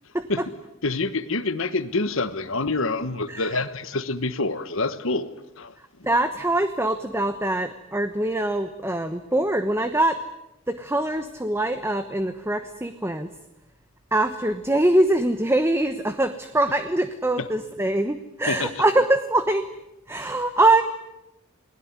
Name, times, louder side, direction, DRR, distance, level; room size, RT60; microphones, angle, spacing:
voice 1, 0.1-0.4 3.3-3.5 6.0-10.2 10.7-13.3 14.1-19.7 20.1-20.8, right 1 dB, 10° right, 1.1 m, -23 dB
voice 2, 0.8-5.3 5.6-5.7 17.4-17.5 18.5-18.7 20.2-20.3, left 3 dB, 65° left, 1.3 m, -26 dB
29.0 x 20.5 x 9.7 m
head